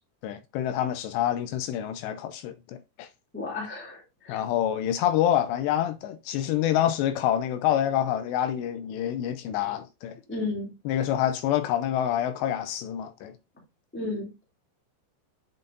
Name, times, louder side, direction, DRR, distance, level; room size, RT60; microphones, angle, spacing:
voice 1, 0.2-3.1 4.3-10.2 10.9-13.3, left 11 dB, 80° left, 2.6 m, -27 dB
voice 2, 3.3-4.4 10.3-10.7 13.9-14.3, left 3 dB, 10° left, 0.7 m, -33 dB
8.1 x 5.5 x 2.5 m
omnidirectional pair, 5.3 m